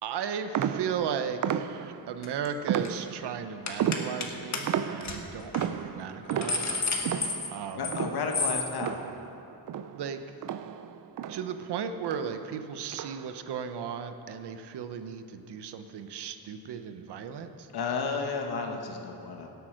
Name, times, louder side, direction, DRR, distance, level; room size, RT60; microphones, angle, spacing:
voice 1, 0.0-6.8 7.5-8.0 9.9-10.4 11.3-17.7, right 7 dB, 90° right, 9 dB, 0.9 m, -36 dB
sound 1, 0.5-2.1 2.7-3.4 3.8-9.4 9.7-11.7 12.0-12.4 12.9-13.4, right 9 dB, 55° right, 0.5 m, -33 dB
sound 2, 2.2-2.5 2.7-3.0 3.7-4.3 4.5-4.6 5.0-5.2 5.5-5.7 6.1-8.0 8.3-8.7, left 3 dB, 45° left, 1.4 m, -31 dB
voice 2, 7.8-9.0 17.7-19.5, left 4 dB, 70° left, 3 dB, 1.4 m, -32 dB
17.0 x 8.2 x 6.4 m, 2.9 s
wide cardioid pair, 140°, 39 cm